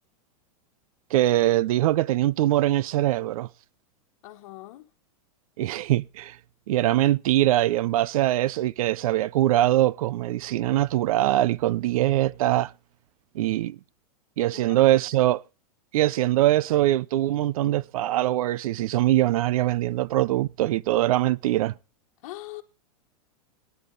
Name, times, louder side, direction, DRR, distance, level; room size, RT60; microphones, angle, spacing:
voice 1, 1.1-3.5 5.6-6.4 6.7-12.7 13.3-13.8 14.4-15.4 15.9-21.7, right 15 dB, 65° right, 0.6 m, -22 dB
voice 2, 4.2-4.9 14.5-14.9 22.2-22.6, left 17 dB, 50° left, 1.4 m, -41 dB
18.0 x 10.5 x 3.9 m
supercardioid pair, 165°, 20 cm